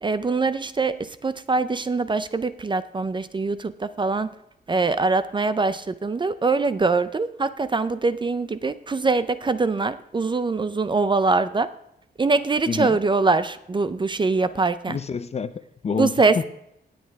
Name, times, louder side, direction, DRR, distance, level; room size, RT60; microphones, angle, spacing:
voice 1, 0.0-4.3 4.7-11.7 12.2-15.0 16.0-16.4, right 3 dB, 25° right, 0.4 m, -23 dB
voice 2, 12.7-13.0 14.9-16.4, left 5 dB, 35° left, 0.5 m, -28 dB
18.0 x 8.6 x 3.5 m
wide cardioid pair, 165°, 18 cm